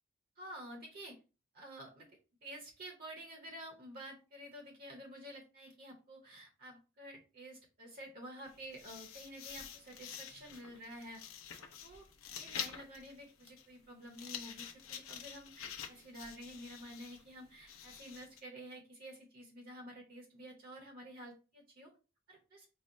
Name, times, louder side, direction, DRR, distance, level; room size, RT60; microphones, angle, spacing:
voice 1, 0.4-1.2 1.5-2.1 2.4-11.2 11.5-12.1 12.3-21.9 22.3-22.7, equal, 45° right, 0 dB, 0.9 m, -50 dB
sound 1, 8.4-18.4, left 8 dB, 85° left, 0.7 m, -48 dB
4.2 x 2.1 x 3.8 m, 0.33 s
head